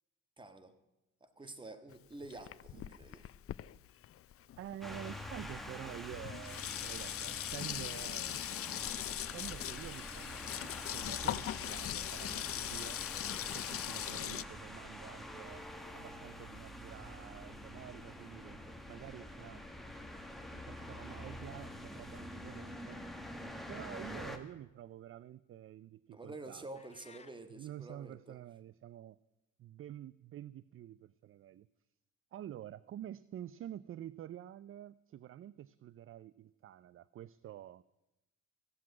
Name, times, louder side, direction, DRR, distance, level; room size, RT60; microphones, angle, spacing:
voice 1, 0.4-0.7 1.2-3.3 26.1-28.4, right 2 dB, 15° right, 9 dB, 1.5 m, -49 dB
Sink (filling or washing), 1.9-5.0 5.8-5.9 6.1-14.4, left 12 dB, 50° left, 0.5 m, -40 dB
voice 2, 4.6-8.4 9.2-13.0 13.5-15.6 15.9-18.6 18.9-19.7 20.5-23.1 23.7-26.7 27.5-29.2 29.6-31.7 32.3-37.8, right 11 dB, 45° right, 19 dB, 0.4 m, -49 dB
sound 1, 4.8-24.4, left 1 dB, ahead, 1.7 m, -46 dB
sound 2, 26.7-27.4, left 5 dB, 20° left, 1.0 m, -58 dB
16.5 x 7.5 x 9.5 m, 0.97 s
cardioid pair, 90°, 30 cm